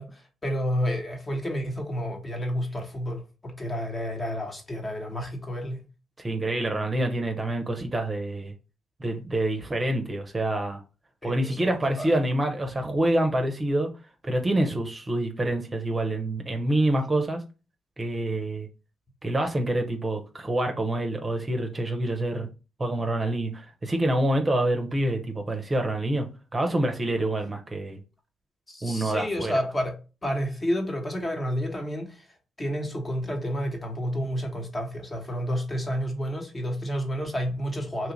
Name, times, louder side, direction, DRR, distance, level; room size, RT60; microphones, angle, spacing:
voice 1, 0.0-5.8 11.2-12.1 28.7-30.0 30.2-32.3 32.6-38.1, equal, 30° left, 1.1 m, -30 dB
voice 2, 6.2-8.5 9.0-10.8 11.2-13.9 14.3-17.4 18.0-18.7 19.2-22.5 22.8-28.0 28.8-29.6, right 1 dB, 30° right, 0.6 m, -26 dB
2.9 x 2.4 x 3.1 m
hypercardioid pair, 45°, 0 cm